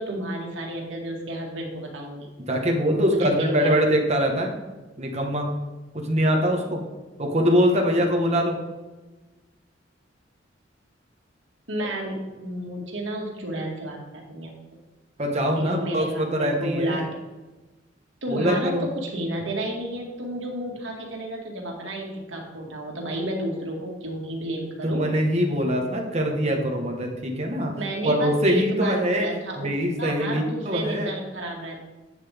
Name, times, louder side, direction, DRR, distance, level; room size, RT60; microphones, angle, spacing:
voice 1, 0.0-2.3 3.1-3.7 11.7-14.6 15.6-17.1 18.2-25.1 27.8-31.8, right 1 dB, 75° right, 0 dB, 2.1 m, -31 dB
voice 2, 2.4-4.5 5.0-5.5 5.9-6.8 7.2-8.6 15.2-17.1 18.3-18.9 24.8-27.7 28.0-29.3 29.6-31.1, equal, 35° right, 1 dB, 1.4 m, -23 dB
11.0 x 8.0 x 3.6 m, 1.2 s
head